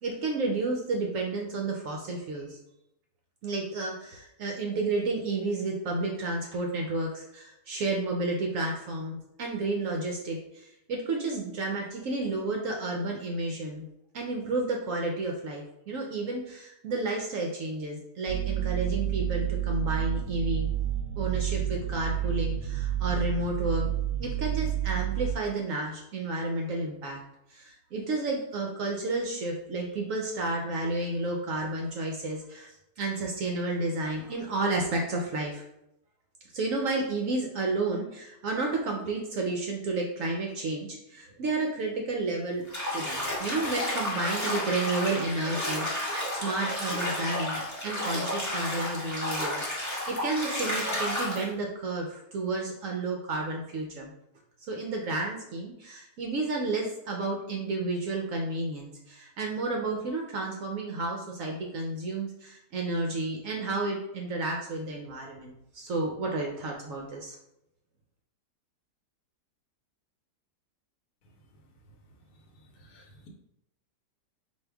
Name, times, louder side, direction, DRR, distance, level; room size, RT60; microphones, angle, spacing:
voice 1, 0.0-2.6 3.4-13.9 14.1-20.7 21.2-23.9 24.2-27.2 27.5-35.6 36.5-42.6 42.9-54.1 54.7-67.4, right 2 dB, 65° right, 0 dB, 0.8 m, -31 dB
sound 1, 18.3-25.4, right 12 dB, 85° right, 1.2 m, -29 dB
Bathtub (filling or washing), 42.7-51.4, left 1 dB, 10° left, 1.2 m, -31 dB
voice 2, 72.6-73.3, left 1 dB, 70° left, 1 dB, 1.2 m, -55 dB
4.5 x 2.6 x 3.4 m, 0.84 s
omnidirectional pair, 1.8 m